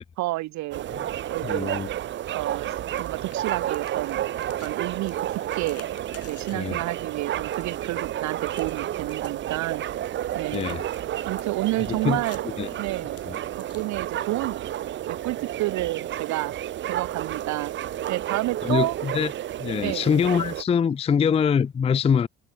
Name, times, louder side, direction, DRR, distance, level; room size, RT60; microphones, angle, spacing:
voice 1, 0.2-0.8 1.3-1.7 2.3-4.2 4.6-5.8 6.2-9.8 10.3-10.7 11.2-12.4 12.8-13.2 13.7-14.6 15.1-16.6 16.9-17.7 18.1-18.9 19.8-20.1, right 18 dB, 60° right, 1.1 m, -30 dB
sound 1, 0.7-20.6, right 12 dB, 35° right, 0.5 m, -31 dB
voice 2, 1.4-1.9 6.5-6.8 10.5-10.8 11.9-12.2 12.6-12.7 13.3-13.4 18.6-19.3 19.6-22.3, left 7 dB, 20° left, 0.4 m, -24 dB
sound 2, 2.1-14.5, left 9 dB, 45° left, 7.1 m, -53 dB
hypercardioid pair, 55°, 32 cm